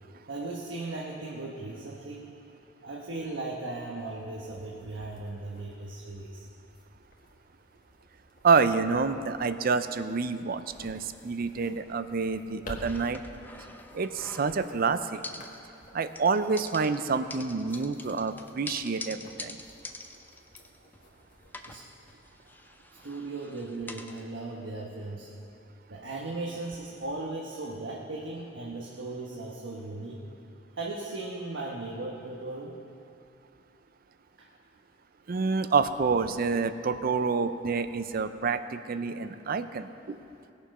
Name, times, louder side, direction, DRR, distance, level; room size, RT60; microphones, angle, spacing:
voice 1, 0.3-2.2 2.8-6.4 21.7-21.8 23.0-25.3 25.9-30.2 30.8-32.8, right 2 dB, 85° right, -3 dB, 1.2 m, -37 dB
sound 1, 4.0-23.1, left 1 dB, 45° left, 1.6 m, -52 dB
voice 2, 8.4-13.2 13.9-15.2 15.9-19.6 35.3-40.2, right 4 dB, 50° right, 11 dB, 0.5 m, -28 dB
sound 2, 12.8-14.8 15.2-15.9 16.1-21.1 21.5-24.2, left 2 dB, 10° left, 0.6 m, -45 dB
20.0 x 7.0 x 5.4 m, 2.7 s
head